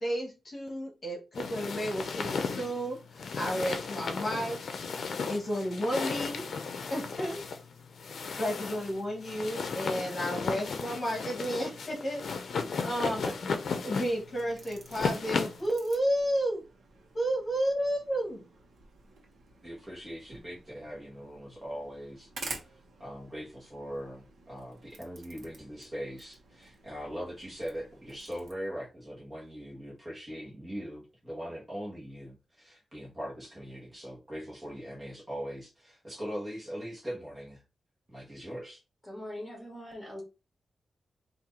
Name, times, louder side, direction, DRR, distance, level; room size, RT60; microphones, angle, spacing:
voice 1, 0.0-4.6 5.2-6.4 6.9-7.4 8.4-12.2 12.8-13.3 13.8-16.6 17.1-18.4, equal, 35° left, 1.3 m, -32 dB
sound 1, 1.3-15.7, left 5 dB, 70° left, 0.6 m, -35 dB
voice 2, 12.7-13.4 19.6-22.3 23.0-37.6 38.1-38.8, equal, 25° right, 1.3 m, -41 dB
sound 2, 13.9-28.5, right 3 dB, 75° right, 1.1 m, -50 dB
voice 3, 39.0-40.2, left 1 dB, 5° left, 2.5 m, -41 dB
4.5 x 2.7 x 3.9 m
wide cardioid pair, 145°, 0 cm